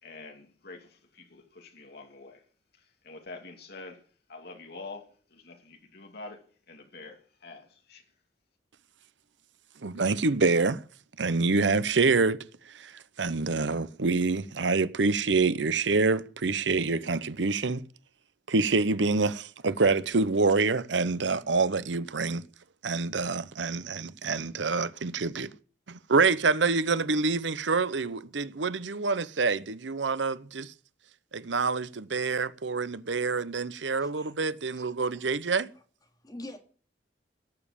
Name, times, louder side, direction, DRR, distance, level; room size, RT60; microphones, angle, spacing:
voice 1, 0.0-2.4 2.8-4.0 4.3-8.0, left 3 dB, 60° left, 2.6 m, -46 dB
voice 2, 9.8-10.8 11.2-12.4 12.7-12.9 13.2-17.8 18.5-22.4 22.8-25.5 25.9-30.7 31.3-35.7, right 4 dB, 90° right, 0.9 m, -26 dB
voice 3, 34.0-34.4 34.7-35.2 36.2-36.6, left 1 dB, 20° left, 2.8 m, -45 dB
17.5 x 7.4 x 8.6 m
head